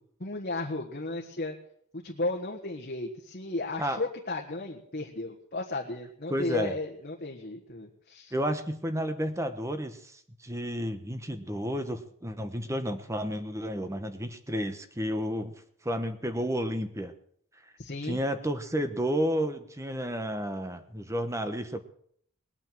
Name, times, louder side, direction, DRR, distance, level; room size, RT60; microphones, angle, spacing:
voice 1, 0.2-1.5 1.9-8.3 17.8-18.2, left 2 dB, 45° left, 0 dB, 1.5 m, -34 dB
voice 2, 6.3-6.7 8.3-15.5 15.8-17.1 18.0-21.8, equal, 15° right, 9 dB, 1.1 m, -31 dB
20.0 x 9.0 x 7.6 m, 0.65 s
head